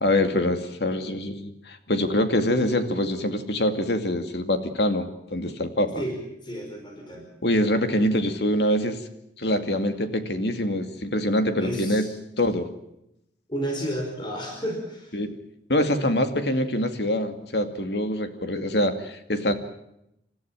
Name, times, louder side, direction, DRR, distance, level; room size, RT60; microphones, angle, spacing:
voice 1, 0.0-6.0 7.4-9.0 9.4-12.0 12.4-12.7 15.1-15.3 15.7-19.5, left 1 dB, 65° left, 8 dB, 2.4 m, -24 dB
voice 2, 5.9-7.3 11.6-12.0 13.5-15.1, equal, 25° left, 1 dB, 5.0 m, -32 dB
28.0 x 14.0 x 8.8 m, 0.81 s
head